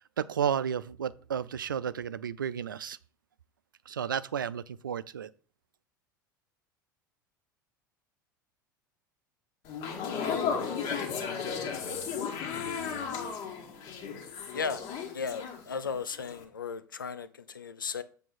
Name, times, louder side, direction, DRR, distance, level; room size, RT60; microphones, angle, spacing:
voice 1, 0.2-3.0 3.9-5.3, right 8 dB, 75° right, 0.4 m, -32 dB
sound 1, 9.7-15.9 16.2-16.4, left 6 dB, 45° left, 1.7 m, -34 dB
voice 2, 14.5-14.8 15.1-18.0, left 5 dB, 75° left, 0.6 m, -35 dB
7.6 x 3.5 x 5.9 m
figure-of-eight pair, 75°, 11 cm